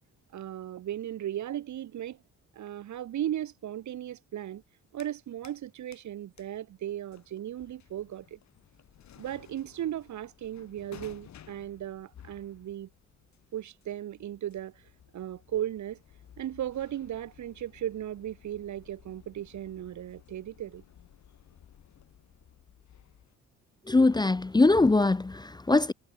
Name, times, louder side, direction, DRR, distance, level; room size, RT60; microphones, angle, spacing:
voice 1, 0.3-2.2 2.5-4.6 4.9-8.4 9.2-12.9 13.5-14.7 15.1-16.0 16.4-20.8, right 11 dB, 70° right, 2.7 m, -36 dB
sound 1, 4.6-5.7 5.9-23.4, left 10 dB, 65° left, 5.8 m, -56 dB
voice 2, 23.9-25.9, left 3 dB, 15° left, 0.8 m, -22 dB
cardioid pair, 90°, 30 cm